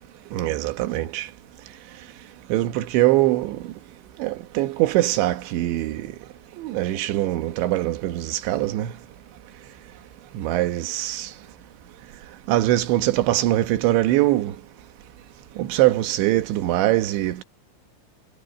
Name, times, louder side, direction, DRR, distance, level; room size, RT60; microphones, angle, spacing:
voice 1, 0.3-1.3 2.5-3.6 4.2-6.1 6.6-8.9 10.3-11.3 12.5-14.5 15.6-17.4, right 15 dB, 70° right, 3.2 m, -22 dB
omnidirectional pair, 5.9 m